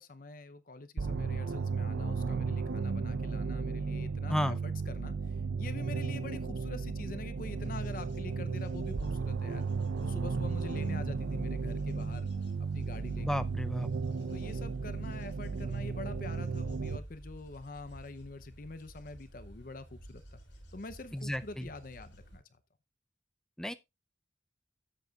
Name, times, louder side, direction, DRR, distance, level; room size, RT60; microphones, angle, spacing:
voice 1, 0.0-9.6 10.0-12.3 12.6-13.5 14.3-20.4 20.7-22.4, left 3 dB, 45° left, 0.6 m, -45 dB
sound 1, 1.0-17.0, right 4 dB, 85° right, 0.6 m, -34 dB
Bird / Insect / Wind, 7.4-22.4, equal, 65° left, 5.4 m, -53 dB
voice 2, 13.2-13.9 21.1-21.7 23.6-23.7, equal, 5° left, 0.5 m, -33 dB
13.5 x 8.0 x 2.4 m
head